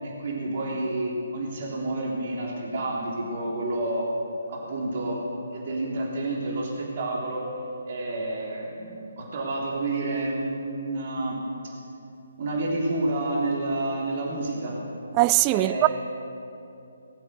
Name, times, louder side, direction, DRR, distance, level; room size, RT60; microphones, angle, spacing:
voice 1, 0.0-4.1 4.5-5.2 5.5-7.5 7.9-11.7 12.4-14.8 15.5-15.9, right 2 dB, 45° right, 3.3 m, -29 dB
voice 2, 15.1-15.9, right 18 dB, 25° right, 0.3 m, -20 dB
19.5 x 7.7 x 6.9 m
figure-of-eight pair, 140°, 0 cm